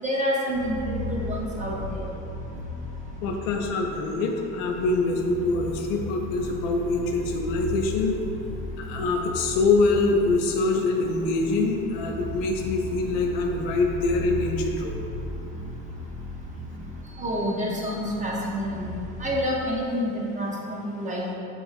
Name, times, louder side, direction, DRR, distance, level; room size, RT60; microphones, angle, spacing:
voice 1, 0.0-2.1 17.1-18.9 19.2-21.3, equal, 20° right, -4 dB, 0.4 m, -28 dB
sound 1, 0.5-19.5, left 1 dB, 65° right, 0.9 m, -36 dB
voice 2, 3.2-8.2 8.8-15.0, left 3 dB, 65° left, 2 dB, 0.5 m, -24 dB
3.9 x 2.4 x 2.3 m, 2.8 s
figure-of-eight pair, 55°, 44 cm